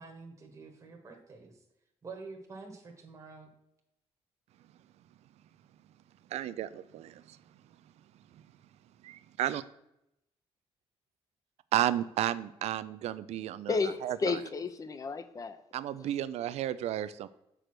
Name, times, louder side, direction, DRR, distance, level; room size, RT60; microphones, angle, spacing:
voice 1, 0.0-1.6 2.0-3.5, right 4 dB, 30° right, 2 dB, 1.1 m, -47 dB
voice 2, 6.3-7.4 9.0-9.6 11.7-13.7 14.0-14.2 15.7-17.3, right 12 dB, 85° right, 15 dB, 0.4 m, -32 dB
voice 3, 13.7-15.6 16.0-16.1, left 4 dB, 35° left, 11 dB, 0.6 m, -32 dB
6.6 x 4.8 x 5.9 m, 0.81 s
cardioid pair, 135°, 11 cm